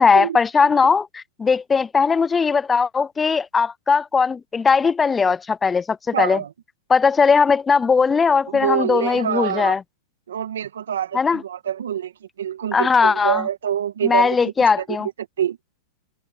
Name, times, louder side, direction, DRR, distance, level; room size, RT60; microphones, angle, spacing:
voice 1, 0.0-6.4 6.9-9.8 11.1-11.4 12.7-13.4 14.0-15.1, left 5 dB, 10° left, 0.4 m, -19 dB
voice 2, 6.1-6.5 8.5-9.8 10.3-14.8 15.4-15.6, right 9 dB, 85° right, 2.1 m, -26 dB
hypercardioid pair, 150°, 0 cm